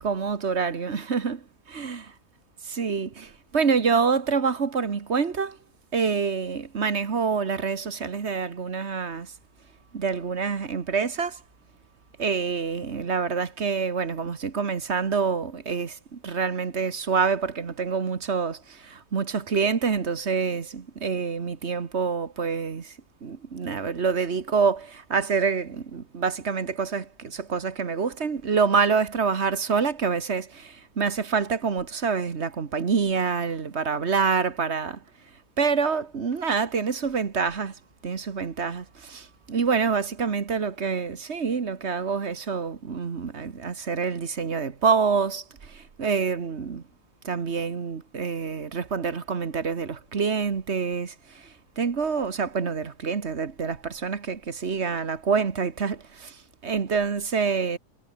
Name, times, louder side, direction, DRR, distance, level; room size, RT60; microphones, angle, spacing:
voice 1, 0.0-1.4 1.7-2.0 2.6-5.6 5.9-9.3 9.9-11.4 12.2-22.9 23.2-35.0 35.6-37.7 38.0-46.8 47.2-51.5 51.8-56.4 56.6-57.8, right 5 dB, 50° right, 1.7 m, -26 dB
omnidirectional pair, 1.6 m